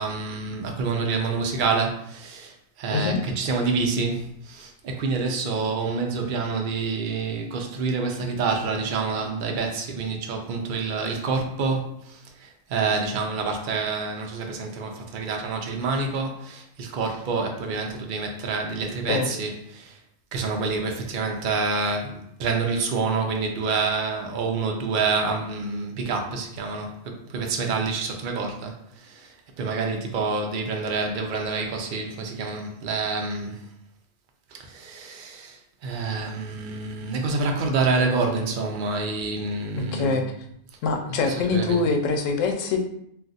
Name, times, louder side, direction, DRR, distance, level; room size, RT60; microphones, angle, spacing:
voice 1, 0.0-20.0 20.3-33.6 34.5-40.2 41.2-41.9, right 4 dB, 55° right, 3 dB, 0.6 m, -27 dB
voice 2, 39.8-40.2 40.8-42.8, left 4 dB, 90° left, 4 dB, 0.9 m, -24 dB
2.4 x 2.4 x 3.9 m, 0.73 s
omnidirectional pair, 1.3 m